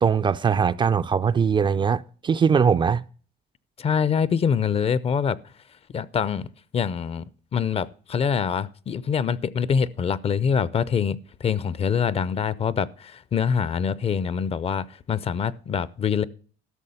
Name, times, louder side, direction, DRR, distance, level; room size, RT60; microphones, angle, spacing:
voice 1, 0.0-3.0, right 6 dB, 30° right, 0.4 m, -21 dB
voice 2, 3.8-5.4 5.9-7.2 7.5-16.2, left 7 dB, 35° left, 0.5 m, -25 dB
12.5 x 6.2 x 5.5 m
cardioid pair, 110°, 17 cm